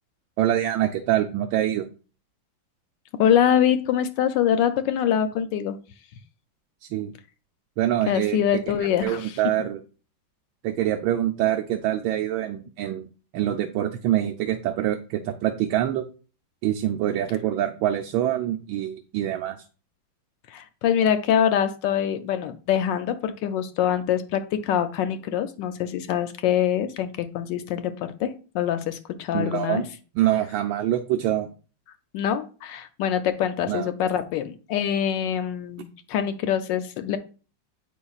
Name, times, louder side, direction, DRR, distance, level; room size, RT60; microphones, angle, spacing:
voice 1, 0.4-1.9 6.8-7.1 7.8-8.4 9.0-9.8 10.6-13.1 13.3-16.0 16.6-19.6 29.3-29.8 30.1-31.5 33.7-33.9, right 12 dB, 85° right, 4 dB, 1.4 m, -25 dB
voice 2, 3.2-5.8 8.1-9.4 20.5-29.8 32.1-37.2, left 9 dB, 75° left, 10 dB, 1.2 m, -24 dB
8.2 x 5.4 x 2.4 m, 0.37 s
omnidirectional pair, 2.1 m